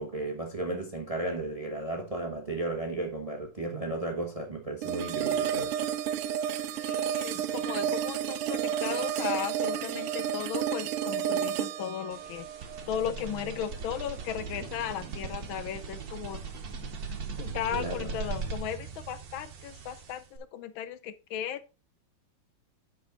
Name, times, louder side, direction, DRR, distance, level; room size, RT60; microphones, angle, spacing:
voice 1, 0.0-5.8 17.7-18.2, right 2 dB, 25° right, 0.8 m, -34 dB
sound 1, 4.8-13.8, right 9 dB, 90° right, 1.5 m, -31 dB
voice 2, 6.7-12.5 12.9-16.4 17.4-21.7, left 9 dB, 75° left, 1.3 m, -36 dB
sound 2, 12.1-20.4, right 5 dB, 50° right, 1.5 m, -39 dB
8.4 x 5.6 x 3.8 m
omnidirectional pair, 2.3 m